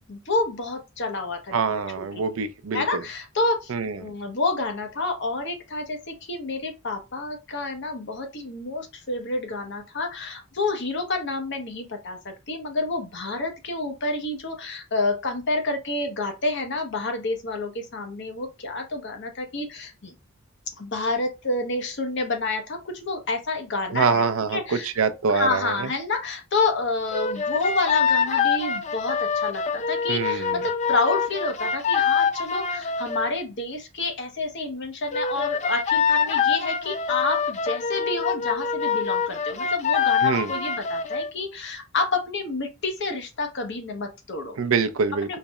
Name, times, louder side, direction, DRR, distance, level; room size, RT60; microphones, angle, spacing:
voice 1, 0.1-2.2 2.7-20.1 20.8-24.2 24.5-24.9 25.3-44.6 45.2-45.4, left 3 dB, 60° left, 0.9 m, -29 dB
voice 2, 1.5-3.0 3.7-4.0 23.9-25.9 30.1-30.6 40.2-40.5 44.6-45.4, right 5 dB, 85° right, 0.5 m, -25 dB
sound 1, 27.1-33.3 35.1-41.3, left 6 dB, 35° left, 0.4 m, -25 dB
3.9 x 3.0 x 2.3 m
head